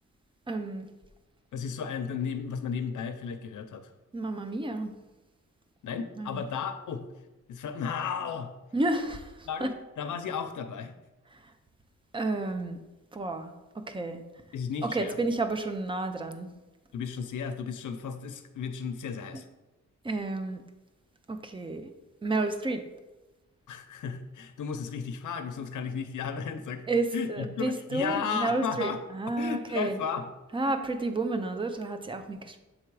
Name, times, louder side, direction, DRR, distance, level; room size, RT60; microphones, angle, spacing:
voice 1, 0.5-0.9 4.1-4.9 6.2-6.4 8.7-9.7 11.3-11.5 12.1-12.8 13.1-14.2 14.8-16.5 20.0-20.6 21.3-21.9 22.2-22.9 26.9-30.0 30.5-32.6, right 2 dB, 15° right, 8 dB, 0.5 m, -31 dB
voice 2, 1.5-3.9 5.8-7.0 7.5-8.5 9.5-9.7 10.0-10.9 14.5-15.2 16.9-19.4 23.7-26.8 27.1-29.0 29.4-30.3 30.6-30.7, left 6 dB, 85° left, 8 dB, 0.7 m, -34 dB
7.5 x 3.5 x 4.7 m, 1.1 s
wide cardioid pair, 145°, 30 cm